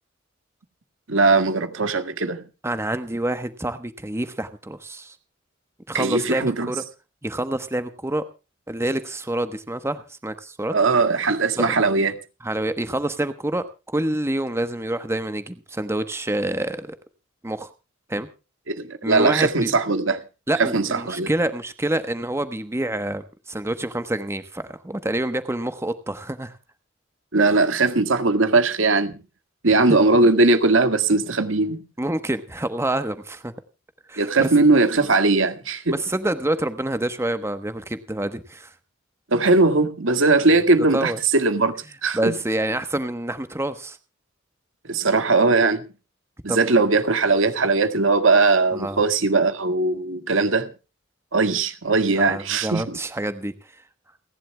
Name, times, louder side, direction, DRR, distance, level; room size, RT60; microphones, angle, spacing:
voice 1, 1.1-2.4 5.9-6.7 10.7-12.2 18.7-20.2 20.6-21.3 27.3-29.2 29.6-31.8 34.2-36.0 39.3-41.7 42.0-42.3 44.9-45.8 46.4-50.7 51.3-53.0, right 3 dB, 80° right, 1.9 m, -19 dB
voice 2, 2.6-5.1 5.9-6.8 7.2-8.2 8.7-10.7 11.6-11.7 12.4-17.0 17.4-17.7 18.1-18.3 19.0-19.7 20.5-26.6 29.9-30.0 32.0-33.5 34.1-34.5 35.9-38.7 40.9-41.2 42.1-44.0 46.5-46.7 48.7-49.0 52.2-53.5, right 1 dB, 15° right, 1.1 m, -27 dB
29.5 x 11.0 x 2.3 m
head